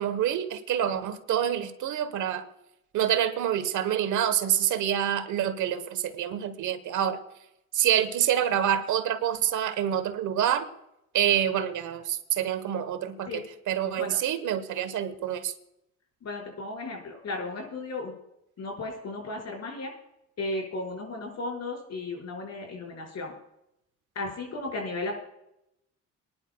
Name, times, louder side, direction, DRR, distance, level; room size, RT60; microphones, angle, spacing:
voice 1, 0.0-2.4 2.9-7.2 7.7-10.7 11.1-15.5, right 10 dB, 80° right, 11 dB, 1.2 m, -27 dB
voice 2, 16.2-18.1 18.6-19.9 20.4-23.3 24.1-25.2, left 2 dB, 60° left, 1 dB, 4.9 m, -35 dB
27.5 x 10.5 x 2.3 m, 0.84 s
cardioid pair, 90°, 30 cm